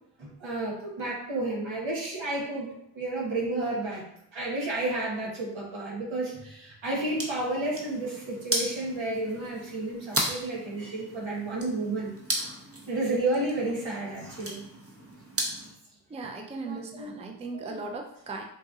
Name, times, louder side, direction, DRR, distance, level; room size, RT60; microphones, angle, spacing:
voice 1, 0.2-4.0 4.3-12.1 12.9-14.6 16.6-17.1 17.5-17.7, right 2 dB, 75° right, -3 dB, 1.1 m, -31 dB
sound 1, 6.9-15.7, right 1 dB, 30° right, 0.8 m, -36 dB
voice 2, 16.1-18.4, right 3 dB, 15° right, 2 dB, 0.4 m, -37 dB
4.0 x 2.5 x 2.4 m, 0.74 s
cardioid pair, 45°, 47 cm